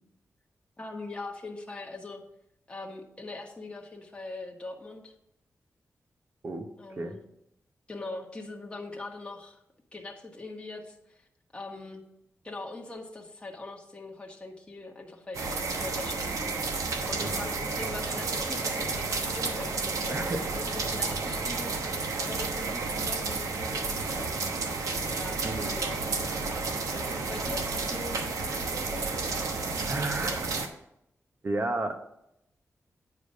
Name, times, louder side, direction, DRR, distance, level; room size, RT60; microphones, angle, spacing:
voice 1, 0.8-2.2 2.7-5.1 6.8-7.2 7.9-9.6 9.9-11.3 11.5-12.0 12.4-21.9 22.2-24.4 25.1-26.0 26.9-29.1, left 2 dB, 20° left, 0 dB, 1.3 m, -42 dB
sound 1, 15.3-30.7, right 4 dB, 85° right, 1.0 m, -31 dB
voice 2, 17.2-17.5 20.1-20.6 25.4-25.8 29.8-30.4 31.4-32.0, right 2 dB, 45° right, 6 dB, 1.0 m, -32 dB
8.9 x 5.0 x 5.4 m, 0.81 s
wide cardioid pair, 90°, 5 cm